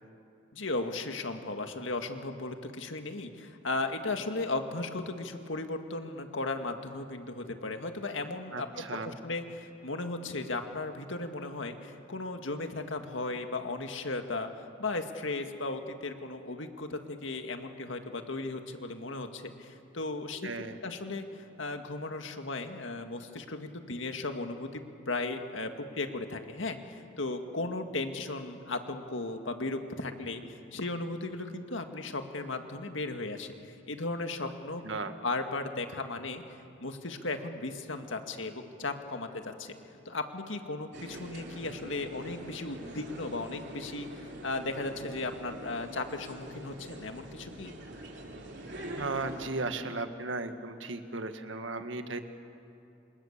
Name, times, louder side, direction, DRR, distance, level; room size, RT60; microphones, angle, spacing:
voice 1, 0.5-14.5 14.8-20.5 20.8-39.8 40.1-47.7, left 2 dB, 85° left, 6 dB, 1.9 m, -36 dB
voice 2, 8.5-9.2 20.4-20.8 34.8-35.1 48.9-52.2, right 3 dB, 80° right, 7 dB, 1.7 m, -36 dB
sound 1, 40.9-49.5, right 1 dB, 60° right, 3.7 m, -44 dB
27.5 x 27.0 x 7.4 m, 2.7 s
head